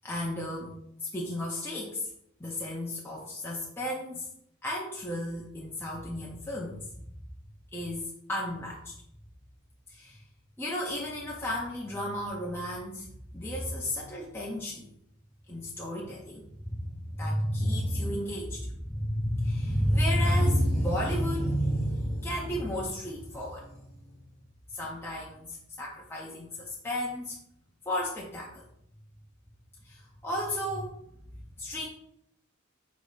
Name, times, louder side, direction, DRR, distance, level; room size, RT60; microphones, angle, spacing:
voice 1, 0.0-0.8 1.0-2.1 2.4-4.3 4.6-6.9 7.7-8.9 9.9-10.2 10.6-14.9 15.5-23.9 24.7-27.4 27.9-28.6 29.8-31.0 31.2-31.9, equal, 10° left, -4 dB, 0.5 m, -32 dB
4.0 x 2.7 x 4.8 m, 0.74 s
head